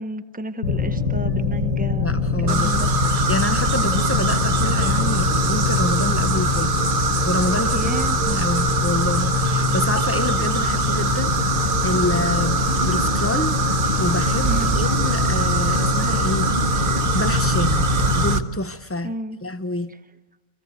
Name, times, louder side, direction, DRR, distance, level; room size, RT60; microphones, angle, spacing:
voice 1, 0.0-2.1 2.4-2.9 7.7-8.2 14.5-14.8 19.0-19.4, right 1 dB, 10° right, 0.7 m, -31 dB
sound 1, 0.6-18.4, left 5 dB, 90° left, 1.7 m, -24 dB
sound 2, 0.6-18.4, right 8 dB, 85° right, 2.2 m, -39 dB
voice 2, 1.9-2.8 3.1-6.7 7.2-7.9 8.2-17.9 18.1-19.1 19.4-19.9, left 2 dB, 25° left, 0.3 m, -27 dB
sound 3, 2.5-18.4, right 4 dB, 45° right, 0.9 m, -23 dB
27.0 x 15.5 x 8.0 m
omnidirectional pair, 1.4 m